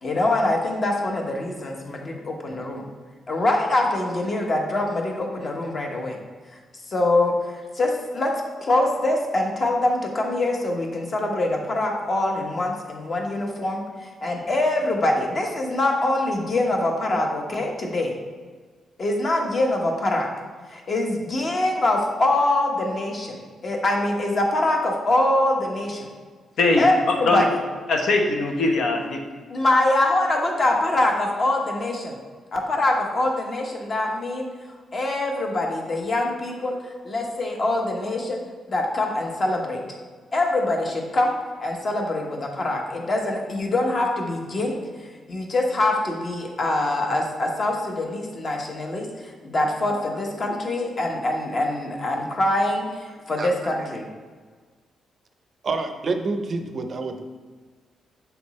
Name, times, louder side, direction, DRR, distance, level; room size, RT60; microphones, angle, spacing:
voice 1, 0.0-2.8 3.3-6.2 6.9-8.3 8.6-18.1 19.0-20.3 20.7-23.4 23.6-26.1 26.8-27.5 29.5-32.1 32.5-34.5 34.9-36.8 37.0-38.4 38.7-39.8 40.3-44.8 45.3-54.1, left 2 dB, 40° left, 1 dB, 1.1 m, -24 dB
voice 2, 26.6-27.4 27.9-29.2, left 2 dB, 70° left, 2 dB, 0.9 m, -21 dB
voice 3, 55.6-57.2, right 3 dB, 45° right, 6 dB, 0.5 m, -28 dB
7.0 x 3.5 x 4.2 m, 1.5 s
cardioid pair, 125°, 0 cm